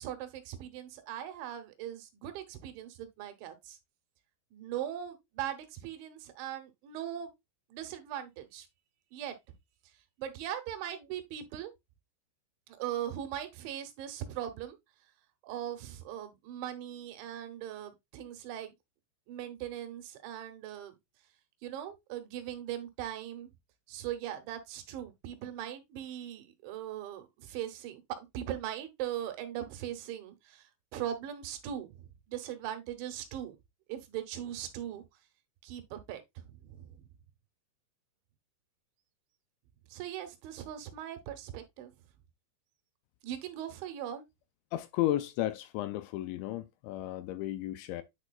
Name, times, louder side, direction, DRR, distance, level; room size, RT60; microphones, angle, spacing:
voice 1, 0.0-3.8 4.5-7.3 7.7-8.7 9.1-9.3 10.2-11.7 12.7-14.8 15.4-18.7 19.3-20.9 21.6-23.5 23.9-33.6 33.9-35.0 35.6-36.9 39.9-41.9 43.2-44.2, right 11 dB, 80° right, 3.1 m, -40 dB
voice 2, 44.7-48.0, left 14 dB, 85° left, 2.7 m, -33 dB
9.7 x 4.7 x 2.3 m
omnidirectional pair, 5.5 m